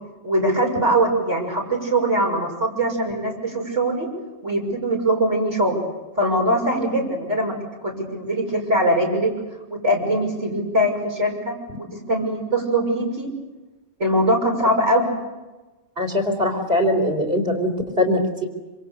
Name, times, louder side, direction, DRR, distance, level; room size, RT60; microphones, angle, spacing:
voice 1, 0.2-4.1 4.4-5.8 6.2-7.5 7.8-9.3 9.7-11.5 12.1-13.3 14.0-15.1, right 1 dB, 70° right, 0 dB, 6.7 m, -21 dB
voice 2, 16.0-17.7 18.0-18.5, left 1 dB, 55° right, 3 dB, 4.4 m, -21 dB
27.0 x 26.0 x 6.8 m, 1.2 s
omnidirectional pair, 1.3 m